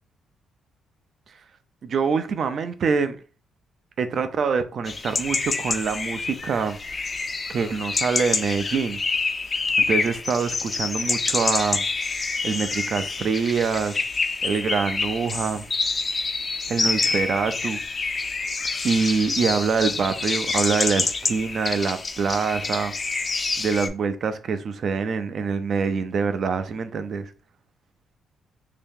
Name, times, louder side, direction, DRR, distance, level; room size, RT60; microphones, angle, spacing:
voice 1, 1.8-3.2 4.0-6.8 7.5-9.0 9.8-11.9 12.4-14.0 14.4-15.7 16.7-17.8 18.8-22.9 23.6-27.3, right 5 dB, 55° right, 0.5 m, -25 dB
sound 1, 4.9-23.9, left 4 dB, 35° left, 0.5 m, -27 dB
2.8 x 2.7 x 3.6 m
cardioid pair, 90°, 0 cm